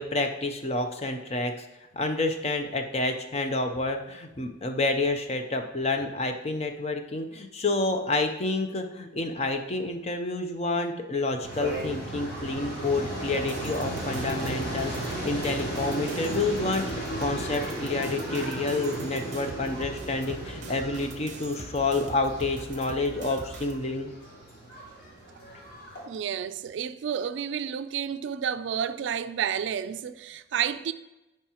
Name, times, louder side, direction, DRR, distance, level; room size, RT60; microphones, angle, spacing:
voice 1, 0.0-1.6 1.9-24.1, left 2 dB, 35° left, 0.6 m, -29 dB
sound 1, 11.4-26.0, right 1 dB, 55° left, 2.3 m, -35 dB
sound 2, 13.3-23.7, right 3 dB, 40° right, 0.8 m, -43 dB
voice 2, 26.1-30.9, right 8 dB, 70° right, 0.3 m, -30 dB
10.0 x 4.6 x 2.9 m
head